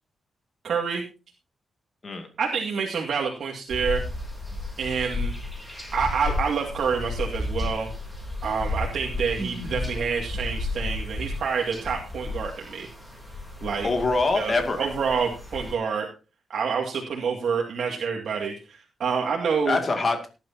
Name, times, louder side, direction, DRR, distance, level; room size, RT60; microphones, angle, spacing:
voice 1, 0.6-1.0 2.4-4.0 4.8-5.3 5.9-7.9 8.4-12.9 13.6-13.9 14.3-16.1 16.5-19.8, right 6 dB, 65° right, 0 dB, 2.2 m, -27 dB
sound 1, 3.7-15.7, left 2 dB, 5° left, 3.4 m, -33 dB
voice 2, 13.8-14.9 19.7-20.3, left 3 dB, 35° left, 5 dB, 2.4 m, -24 dB
18.5 x 11.0 x 2.8 m, 0.32 s
wide cardioid pair, 155°, 0 cm